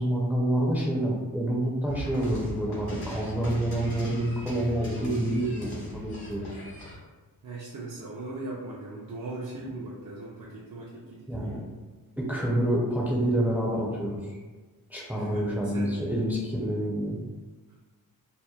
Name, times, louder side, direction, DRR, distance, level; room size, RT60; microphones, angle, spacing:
voice 1, 0.0-6.6 11.3-11.6 12.2-14.2 14.9-17.2, right 1 dB, 5° right, -3 dB, 0.4 m, -28 dB
sound 1, 1.9-7.0, equal, 85° left, 1.0 m, -38 dB
voice 2, 7.4-11.7 15.1-16.0 17.7-17.8, right 2 dB, 60° right, -6 dB, 0.5 m, -39 dB
2.8 x 2.0 x 2.2 m, 1.3 s
wide cardioid pair, 80°, 37 cm